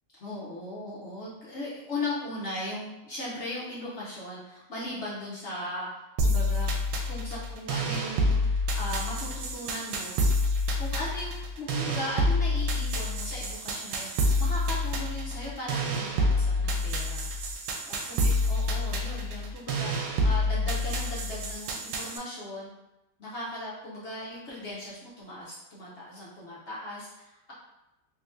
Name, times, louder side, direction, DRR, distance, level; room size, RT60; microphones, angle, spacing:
voice 1, 0.2-5.9 6.2-6.7 7.1-10.2 10.8-17.3 17.8-22.7 23.2-27.5, left 1 dB, 60° left, -7 dB, 0.7 m, -38 dB
sound 1, 6.2-22.2, left 1 dB, 85° right, 1.2 m, -28 dB
3.8 x 2.7 x 2.5 m, 0.97 s
omnidirectional pair, 1.9 m